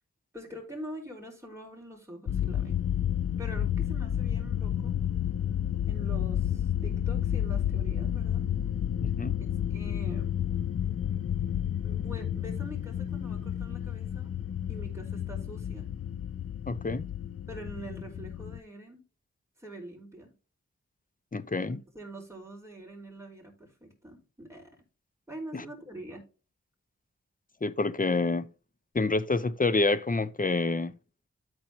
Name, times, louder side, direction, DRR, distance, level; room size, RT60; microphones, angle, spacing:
voice 1, 0.3-2.8 3.4-5.0 5.9-8.5 9.7-10.4 11.8-14.4 14.7-15.9 17.5-19.0 19.6-20.3 21.7-24.7 25.3-26.2, right 1 dB, 10° right, 4.9 m, -44 dB
sound 1, 2.3-18.6, left 10 dB, 50° left, 0.5 m, -31 dB
voice 2, 9.0-9.3 16.7-17.0 21.3-21.8 25.5-25.6 27.6-28.5 28.9-30.9, left 3 dB, 30° left, 0.9 m, -27 dB
13.0 x 4.7 x 3.0 m
cardioid pair, 55°, 29 cm